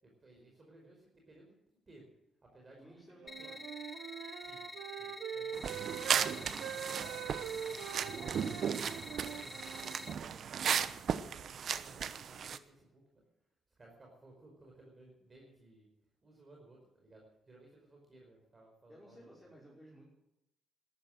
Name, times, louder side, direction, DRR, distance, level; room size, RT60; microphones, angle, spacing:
voice 1, 0.0-1.6 1.9-2.1 2.4-3.1 3.4-3.5 4.4-4.6 4.9-7.8 8.3-13.0 13.8-15.9 16.2-19.4, right 2 dB, 30° right, -1 dB, 5.0 m, -59 dB
voice 2, 2.8-3.7 18.9-20.1, equal, ahead, -7 dB, 5.6 m, -57 dB
Wind instrument woodwind instrument, 3.2-10.0, right 9 dB, 80° right, 1.1 m, -43 dB
sound 1, 3.3-10.1, left 2 dB, 25° left, 1.6 m, -48 dB
sound 2, 5.5-12.6, right 7 dB, 60° right, 0.9 m, -36 dB
13.5 x 12.5 x 7.8 m, 0.87 s
cardioid pair, 90°, 0 cm